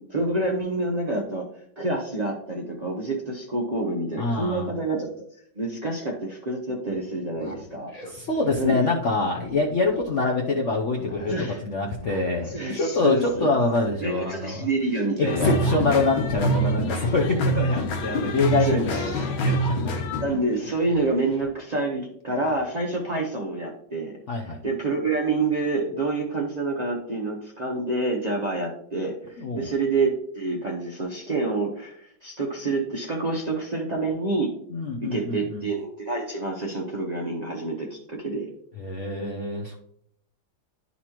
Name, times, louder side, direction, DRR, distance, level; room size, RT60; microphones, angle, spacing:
voice 1, 0.0-1.5 1.8-5.1 5.6-7.9 8.6-8.8 11.3-11.6 12.5-13.5 14.0-15.6 16.9-17.1 18.6-19.3 20.2-34.5 35.0-38.5, right 2 dB, 70° right, -2 dB, 0.4 m, -28 dB
voice 2, 4.2-4.7 8.1-11.3 11.6-14.7 15.2-19.6 24.3-24.6 29.4-29.7 34.7-35.7 38.8-39.8, left 3 dB, 65° left, -1 dB, 0.7 m, -25 dB
sound 1, 7.3-10.4 10.7-11.4 12.0-12.6 12.9-15.3 15.6-16.0 16.3-16.5 16.9-17.5 17.9-20.0 20.3-21.5 22.4-22.6, left 2 dB, 30° left, 0.7 m, -42 dB
sound 2, 15.3-20.2, right 1 dB, 85° left, 1.8 m, -25 dB
11.0 x 4.2 x 2.9 m, 0.68 s
omnidirectional pair, 2.2 m